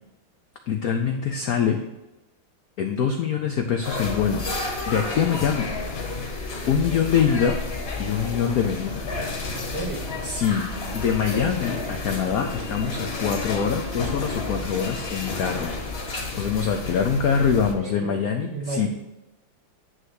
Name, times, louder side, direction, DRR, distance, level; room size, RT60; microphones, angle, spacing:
voice 1, 0.7-1.8 2.8-4.4 4.9-5.7 6.7-7.6 8.0-9.1 10.2-10.7 10.9-15.7 16.1-18.9, left 7 dB, 80° left, 4 dB, 0.8 m, -24 dB
sound 1, 3.8-17.7, left 3 dB, 40° left, 1.1 m, -31 dB
voice 2, 9.5-10.0 17.4-18.9, right 2 dB, 85° right, -1 dB, 2.4 m, -33 dB
9.5 x 3.3 x 6.3 m, 0.98 s
omnidirectional pair, 2.3 m